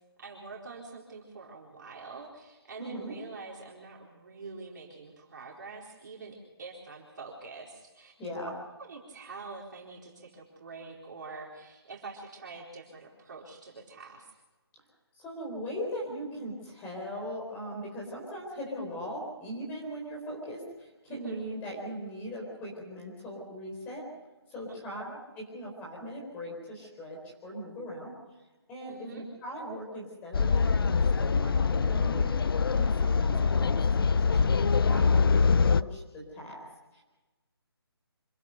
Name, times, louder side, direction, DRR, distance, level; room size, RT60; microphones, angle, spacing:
voice 1, 0.2-8.1 8.8-14.3 21.1-21.4 24.7-25.2 28.9-29.2, right 4 dB, 45° right, -2 dB, 4.2 m, -45 dB
voice 2, 2.8-3.1 8.2-8.5 15.2-24.1 24.5-28.4 28.7-32.4 32.7-33.7 34.1-36.6 36.9-37.0, equal, 10° left, -2 dB, 4.3 m, -39 dB
sound 1, 30.3-35.8, left 5 dB, 60° left, 0.6 m, -24 dB
26.5 x 15.5 x 6.6 m, 1.1 s
hypercardioid pair, 165°, 13 cm